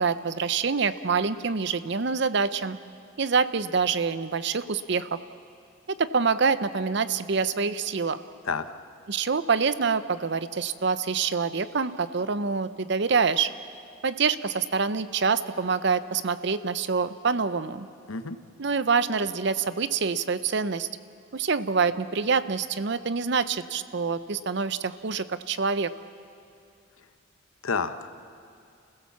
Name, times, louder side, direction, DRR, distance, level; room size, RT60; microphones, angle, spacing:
voice 1, 0.0-2.8 3.2-5.2 6.0-8.2 9.1-13.5 14.0-17.9 18.6-20.9 21.3-25.9, right 5 dB, 55° right, 13 dB, 0.6 m, -26 dB
voice 2, 27.6-28.2, left 5 dB, 85° left, 10 dB, 0.9 m, -29 dB
29.0 x 16.0 x 7.2 m, 2.4 s
head